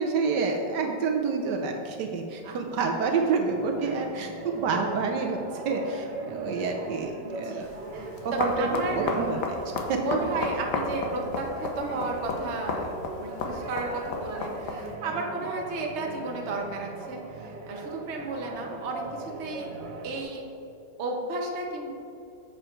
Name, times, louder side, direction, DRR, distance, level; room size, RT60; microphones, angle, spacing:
voice 1, 0.0-5.4 5.6-7.7 8.2-8.7 9.0-9.6 9.9-10.2, right 4 dB, 75° right, 3 dB, 1.3 m, -28 dB
voice 2, 2.4-2.9 3.8-4.2 4.7-5.1 7.2-7.6 7.9-9.3 10.0-12.9 13.2-19.7 20.0-20.4 21.0-21.9, right 2 dB, 45° right, 0 dB, 1.1 m, -34 dB
sound 1, 3.5-20.2, right 2 dB, 90° right, 1.7 m, -40 dB
sound 2, 7.6-14.9, left 3 dB, 70° left, 1.4 m, -34 dB
7.3 x 6.8 x 4.4 m, 2.7 s
omnidirectional pair, 1.9 m